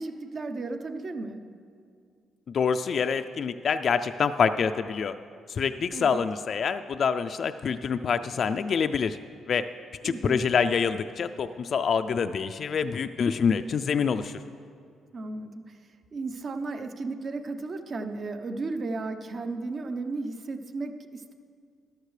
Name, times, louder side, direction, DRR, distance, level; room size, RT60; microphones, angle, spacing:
voice 1, 0.0-1.4 5.9-6.2 10.0-10.5 15.1-15.7 16.1-21.3, right 3 dB, 45° right, 7 dB, 0.7 m, -34 dB
voice 2, 2.5-5.1 5.5-9.2 9.5-9.7 10.0-14.4, left 6 dB, 55° left, 9 dB, 0.3 m, -26 dB
13.5 x 12.0 x 3.2 m, 2.3 s
cardioid pair, 90°, 0 cm